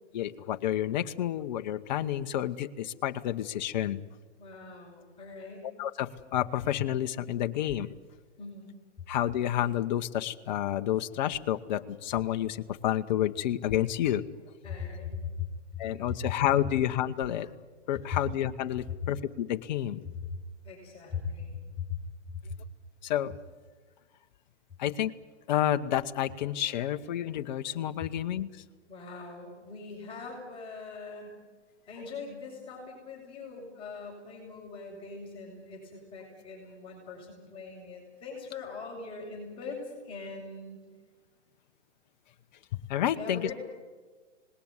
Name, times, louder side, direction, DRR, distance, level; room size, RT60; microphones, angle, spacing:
voice 1, 0.1-4.0 5.8-7.9 9.1-14.2 15.8-17.5 17.9-20.0 23.0-23.3 24.8-25.1 25.5-28.6 42.7-43.5, left 11 dB, 40° left, 8 dB, 1.1 m, -30 dB
voice 2, 4.4-5.7 8.4-8.7 14.6-15.5 16.0-16.1 18.1-18.2 20.3-20.4 20.6-22.0 28.9-31.4 31.9-40.8 43.1-43.5, left 5 dB, 15° left, -4 dB, 6.2 m, -40 dB
26.0 x 19.5 x 9.7 m, 1.4 s
hypercardioid pair, 150°, 36 cm